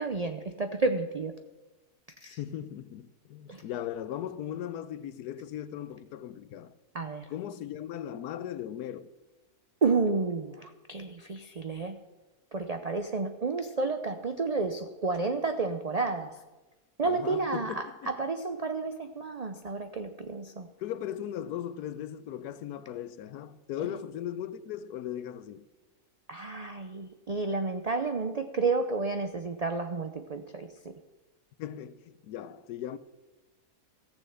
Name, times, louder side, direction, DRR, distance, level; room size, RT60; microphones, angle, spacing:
voice 1, 0.0-1.3 2.2-2.4 3.5-3.6 6.9-7.3 9.8-12.0 12.5-16.3 17.0-20.7 26.3-30.7, right 3 dB, 80° right, 0.3 m, -31 dB
voice 2, 2.4-6.7 7.3-9.1 17.0-18.1 20.8-25.7 31.6-33.0, left 10 dB, 90° left, 1.1 m, -38 dB
14.5 x 6.6 x 7.8 m
omnidirectional pair, 1.6 m